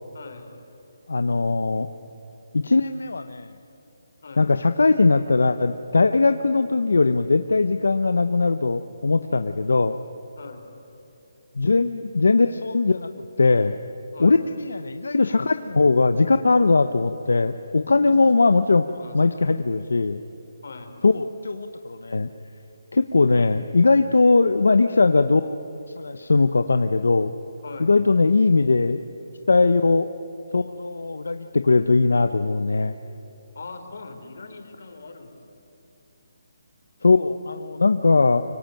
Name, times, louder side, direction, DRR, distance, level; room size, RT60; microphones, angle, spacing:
voice 1, 0.1-0.5 4.2-4.5 10.4-10.7 14.1-14.4 18.1-18.2 18.9-19.2 20.6-20.9 27.6-27.9 33.5-35.4, left 4 dB, 65° left, 5 dB, 4.2 m, -40 dB
voice 2, 1.1-1.9 2.5-3.5 4.4-10.0 11.6-13.1 13.4-13.8 14.2-18.8 19.1-20.2 21.0-22.3 22.9-25.6 26.0-27.3 27.8-29.0 29.5-30.1 30.5-32.9 37.0-38.4, left 3 dB, 90° left, 9 dB, 0.9 m, -20 dB
24.5 x 24.5 x 9.2 m, 3.0 s
hypercardioid pair, 165°, 0 cm